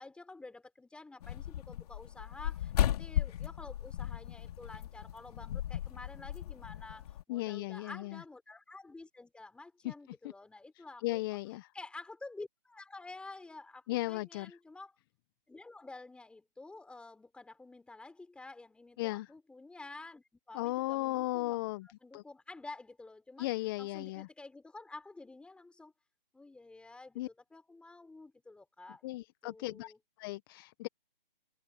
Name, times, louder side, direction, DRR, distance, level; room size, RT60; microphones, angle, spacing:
voice 1, 0.0-11.2 11.7-14.9 15.5-21.6 21.8-23.5 23.8-25.9 26.3-30.0, left 3 dB, 5° left, 3.8 m, -50 dB
sound 1, 1.2-7.2, left 12 dB, 40° left, 3.3 m, -36 dB
voice 2, 7.3-8.2 9.8-9.9 11.0-11.7 13.9-14.6 19.0-19.3 20.5-22.2 23.4-24.3 27.1-27.3 29.0-29.9 30.2-30.9, left 19 dB, 25° left, 1.1 m, -36 dB
hypercardioid pair, 150°, 29 cm